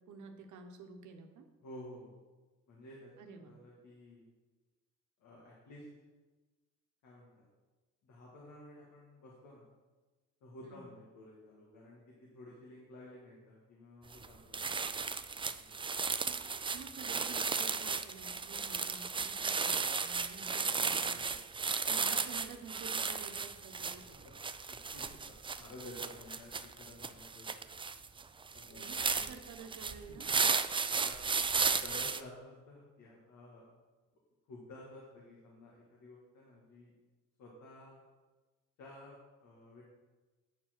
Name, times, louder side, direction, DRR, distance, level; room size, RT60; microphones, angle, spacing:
voice 1, 0.0-1.5 3.2-3.6 10.6-10.8 16.2-16.4 16.7-21.2 21.6-24.1 28.7-30.3, right 5 dB, 75° right, 5 dB, 1.0 m, -51 dB
voice 2, 1.6-2.1 2.7-3.1 3.4-4.2 5.2-5.9 7.0-7.4 8.0-9.6 10.4-15.1 15.6-15.8 21.0-21.4 24.1-27.8 28.5-29.0 30.8-31.2 31.7-33.6 34.5-36.9 37.4-38.0 38.8-39.8, left 1 dB, 80° left, -4 dB, 1.9 m, -53 dB
sound 1, 14.1-14.3 14.5-32.2, right 5 dB, 15° right, 0.4 m, -35 dB
8.9 x 4.7 x 6.0 m, 1.2 s
cardioid pair, 90°, 30 cm